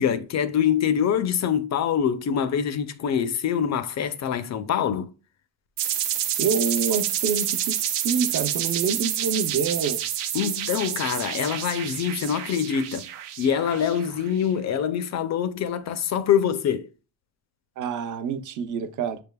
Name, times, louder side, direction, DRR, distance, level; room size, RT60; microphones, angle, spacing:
voice 1, 0.0-5.1 10.3-13.1 13.4-16.9, left 8 dB, 45° left, 0.4 m, -25 dB
sound 1, 5.8-14.3, right 10 dB, 80° right, 0.8 m, -28 dB
voice 2, 6.4-10.0 17.8-19.2, right 6 dB, 50° right, 0.6 m, -27 dB
7.0 x 3.4 x 2.2 m
cardioid pair, 170°, 41 cm